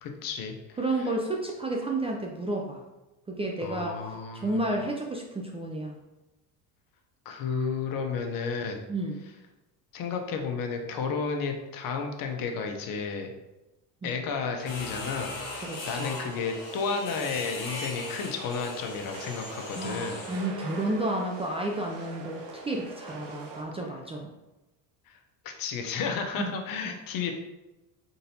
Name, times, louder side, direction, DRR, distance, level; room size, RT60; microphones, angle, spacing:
voice 1, 0.0-1.1 3.6-4.6 7.2-8.8 9.9-13.3 14.0-20.2 25.1-25.2 25.4-27.3, left 5 dB, 55° left, 4 dB, 0.8 m, -32 dB
voice 2, 0.8-2.8 3.3-6.0 8.9-9.2 14.0-14.2 15.6-16.1 19.7-24.3 26.4-26.5 26.8-26.9, right 2 dB, 15° right, 0 dB, 0.4 m, -31 dB
sound 1, 14.6-23.6, right 3 dB, 55° right, 0.9 m, -42 dB
sound 2, 14.7-20.5, left 3 dB, 80° left, 1.1 m, -40 dB
4.0 x 3.9 x 2.8 m, 1.0 s
supercardioid pair, 100°, 41 cm